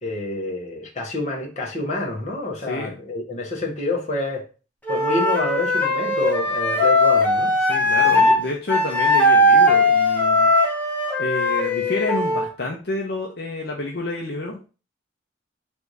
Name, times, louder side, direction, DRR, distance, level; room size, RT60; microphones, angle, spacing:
voice 1, 0.0-4.4 4.9-7.5, left 2 dB, 35° left, 1.1 m, -28 dB
voice 2, 2.6-3.0 7.6-10.5 11.2-14.7, left 2 dB, 60° left, 0.7 m, -29 dB
Wind instrument woodwind instrument, 4.8-8.4 8.7-12.5, left 1 dB, 10° left, 0.7 m, -19 dB
3.5 x 2.6 x 4.6 m
head